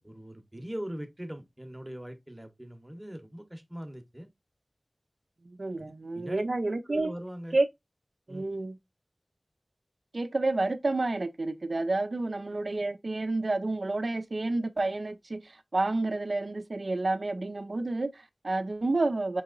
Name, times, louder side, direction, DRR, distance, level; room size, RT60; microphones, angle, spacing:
voice 1, 0.0-4.3 5.8-6.4 6.8-7.6 8.3-8.5, equal, 15° right, 0.8 m, -41 dB
voice 2, 5.5-7.1 7.5-7.7 8.3-8.8 10.1-19.4, right 2 dB, 65° right, 0.4 m, -30 dB
5.3 x 2.9 x 2.4 m
wide cardioid pair, 60°, 0 cm